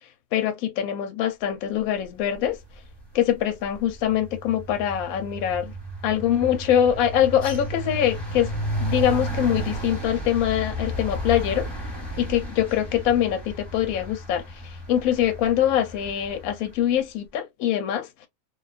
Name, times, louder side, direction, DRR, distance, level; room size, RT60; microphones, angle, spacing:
voice 1, 0.3-2.6 3.1-5.7 6.0-8.5 8.8-11.7 12.2-18.3, left 10 dB, 75° left, 1.0 m, -24 dB
sound 1, 2.8-3.1 3.4-16.5, right 1 dB, 20° left, 1.0 m, -33 dB
2.5 x 2.3 x 2.3 m
omnidirectional pair, 1.6 m